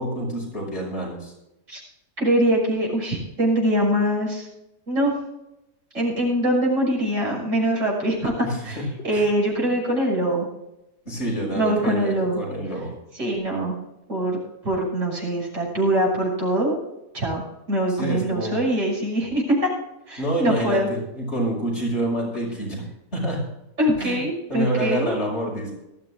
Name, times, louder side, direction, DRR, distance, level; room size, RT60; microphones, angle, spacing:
voice 1, 0.0-1.3 8.4-8.8 9.1-9.3 9.6-9.7 11.0-13.0 17.9-18.6 20.2-22.8 23.1-23.5 24.0-24.2 24.5-25.8, right 1 dB, 50° left, -2 dB, 6.2 m, -27 dB
voice 2, 2.2-4.5 4.9-5.1 5.9-10.5 11.5-12.4 13.1-13.8 14.1-14.4 14.6-16.8 17.1-17.4 17.7-19.7 20.1-20.9 23.8-25.2, right 1 dB, 60° right, -3 dB, 6.7 m, -23 dB
19.0 x 14.0 x 2.5 m, 0.91 s
omnidirectional pair, 1.5 m